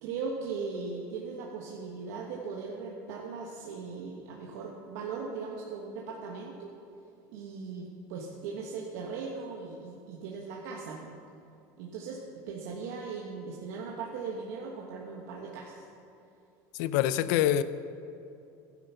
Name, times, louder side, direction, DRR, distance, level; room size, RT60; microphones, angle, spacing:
voice 1, 0.0-6.7 7.3-11.1 11.8-12.2 12.5-15.8, right 4 dB, 85° right, -2 dB, 1.4 m, -38 dB
voice 2, 16.8-17.6, left 12 dB, 80° left, 15 dB, 0.5 m, -25 dB
12.5 x 10.5 x 5.8 m, 2.7 s
cardioid pair, 135°, 9 cm